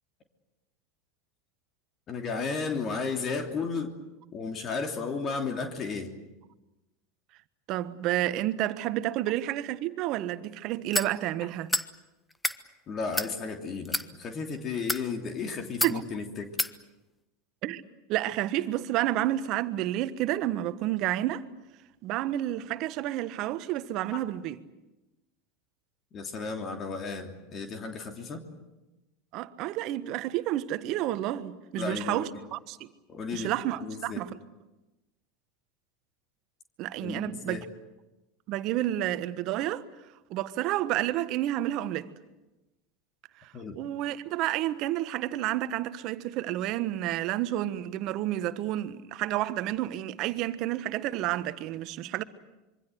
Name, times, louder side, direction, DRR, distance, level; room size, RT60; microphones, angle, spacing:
voice 1, 2.1-3.9 4.3-6.1 12.9-16.5 24.1-24.2 26.1-28.4 31.8-32.2 33.1-33.5 33.8-34.2 37.0-37.6 43.5-43.8, left 4 dB, 35° left, 3.0 m, -33 dB
voice 2, 7.7-11.7 15.8-16.0 17.6-17.8 18.1-21.5 22.0-24.6 29.3-32.9 33.3-34.4 36.8-37.6 38.5-39.8 40.3-42.1 43.4-52.2, right 14 dB, 50° right, 1.4 m, -30 dB
sound 1, 10.9-11.1 11.7-11.9 12.3-12.6 13.1-13.3 13.9-14.1 14.7-15.0 15.8-16.0 16.6-16.7, left 2 dB, 10° left, 1.2 m, -28 dB
26.0 x 24.0 x 8.0 m
hypercardioid pair, 85°, 0 cm